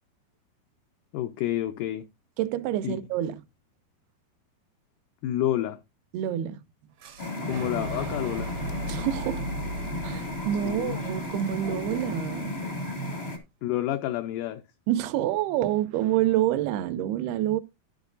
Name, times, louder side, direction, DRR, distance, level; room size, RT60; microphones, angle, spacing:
voice 1, 1.1-2.1 2.8-3.0 5.2-5.8 7.4-8.5 10.7-11.0 13.6-14.6, left 12 dB, 90° left, 1.8 m, -29 dB
voice 2, 2.4-3.4 6.1-6.6 8.9-9.5 10.0-12.6 14.9-17.6, right 12 dB, 90° right, 2.6 m, -27 dB
Boom, 7.0-12.9, right 1 dB, 70° right, 1.5 m, -38 dB
sound 1, 7.2-13.4, left 1 dB, 70° left, 0.6 m, -34 dB
10.5 x 10.5 x 2.4 m
omnidirectional pair, 4.4 m